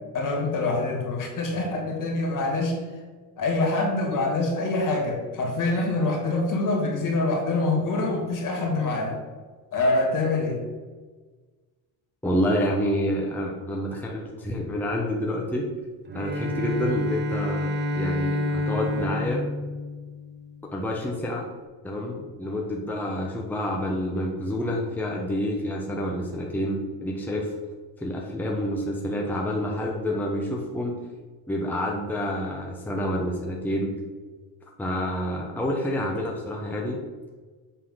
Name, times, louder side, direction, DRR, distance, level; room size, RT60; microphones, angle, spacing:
voice 1, 0.1-2.8 3.4-9.2 9.7-10.6, left 2 dB, 50° left, 0 dB, 2.5 m, -25 dB
voice 2, 12.2-15.7 16.1-19.4 20.7-21.5 21.8-27.5 28.0-31.0 31.5-33.9 34.8-37.0, equal, 5° left, -2 dB, 0.9 m, -28 dB
Bowed string instrument, 16.1-20.7, left 1 dB, 25° right, 0.6 m, -29 dB
7.7 x 4.1 x 5.6 m, 1.4 s
cardioid pair, 130°, 40 cm